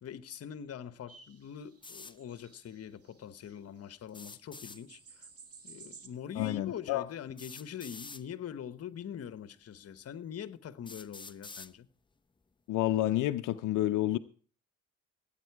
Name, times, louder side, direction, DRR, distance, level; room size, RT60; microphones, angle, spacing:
voice 1, 0.0-5.3 5.6-11.9, left 8 dB, 55° left, 1.1 m, -43 dB
sound 1, 1.1-3.6 3.9-4.0 4.2-6.1, right 5 dB, 50° right, 2.2 m, -55 dB
sound 2, 1.8-2.2 4.1-4.8 6.2-6.3 7.4-8.2 9.2-9.3 10.0-10.1 10.9-11.7, left 4 dB, 15° left, 0.7 m, -47 dB
voice 2, 6.4-7.0 12.7-14.2, left 14 dB, 90° left, 0.6 m, -29 dB
17.0 x 9.1 x 4.7 m
cardioid pair, 90°, 30 cm